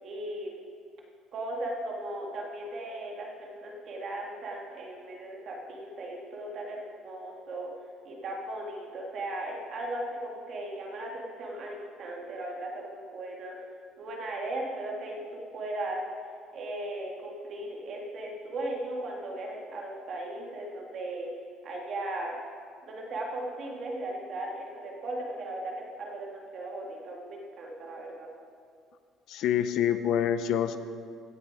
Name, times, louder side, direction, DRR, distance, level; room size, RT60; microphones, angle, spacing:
voice 1, 0.0-0.6 1.3-7.7 8.0-13.6 14.0-16.0 16.5-21.3 21.6-22.4 22.9-28.3, right 1 dB, 40° right, -1 dB, 1.8 m, -37 dB
voice 2, 29.3-30.8, left 9 dB, 55° left, 11 dB, 0.5 m, -26 dB
16.0 x 6.8 x 5.0 m, 2.2 s
cardioid pair, 170°, 0 cm